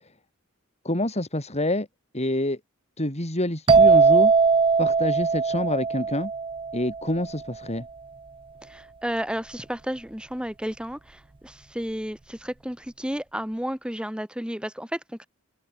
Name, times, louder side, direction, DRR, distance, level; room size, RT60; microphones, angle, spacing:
voice 1, 0.8-1.9 2.1-2.6 3.0-4.3 4.8-6.3 6.7-7.9, left 1 dB, 30° left, 7.5 m, -27 dB
sound 1, 3.7-7.3, right 4 dB, 25° right, 0.5 m, -20 dB
voice 2, 8.6-15.3, equal, 5° right, 5.0 m, -32 dB
open air
head